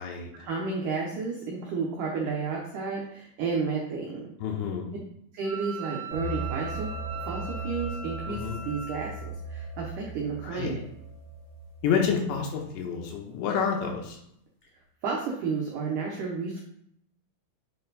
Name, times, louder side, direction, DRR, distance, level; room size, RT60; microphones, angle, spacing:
voice 1, 0.3-4.3 5.3-6.9 7.2-9.1 9.5-10.8 15.0-16.6, right 4 dB, 80° right, -2 dB, 1.8 m, -31 dB
voice 2, 4.4-4.9 8.3-8.6 10.4-10.8 11.8-14.2, left 6 dB, 80° left, 1 dB, 3.3 m, -29 dB
Wind instrument woodwind instrument, 5.4-9.2, right 4 dB, 65° right, 2.0 m, -40 dB
sound 1, 6.1-12.6, right 2 dB, 25° left, 1.7 m, -38 dB
7.8 x 4.4 x 4.1 m, 0.72 s
omnidirectional pair, 5.1 m